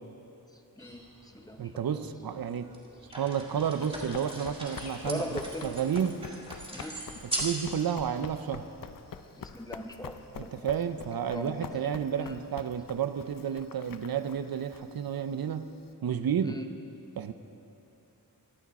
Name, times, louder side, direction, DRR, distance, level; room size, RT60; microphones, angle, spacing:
sound 1, 0.8-5.9, left 1 dB, 90° left, 2.6 m, -55 dB
voice 1, 0.8-1.7 5.1-5.8 6.7-7.0 9.4-10.5 11.3-11.7 12.2-12.4 16.4-16.7, left 1 dB, 10° left, 4 dB, 0.9 m, -39 dB
voice 2, 1.6-2.7 3.1-6.2 7.2-8.7 10.3-15.7 16.0-16.6 17.2-17.3, right 8 dB, 70° right, 10 dB, 0.6 m, -31 dB
sound 2, 2.1-2.2 2.7-7.7 8.0-8.1, right 1 dB, 15° right, 2.1 m, -39 dB
Run, 3.6-15.9, left 6 dB, 60° left, 0.6 m, -46 dB
23.5 x 8.5 x 4.2 m, 3.0 s
wide cardioid pair, 105°, 37 cm